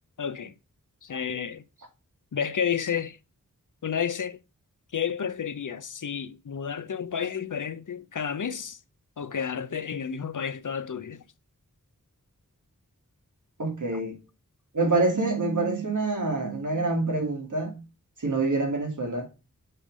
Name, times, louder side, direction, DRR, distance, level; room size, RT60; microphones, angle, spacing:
voice 1, 0.2-0.5 1.0-1.6 2.3-3.2 3.8-4.4 4.9-8.8 9.2-11.2, left 7 dB, 65° left, 0.6 m, -31 dB
voice 2, 13.6-14.2 14.7-17.8 18.2-19.3, right 3 dB, 65° right, 2.3 m, -26 dB
7.6 x 3.3 x 4.9 m
wide cardioid pair, 60°, 33 cm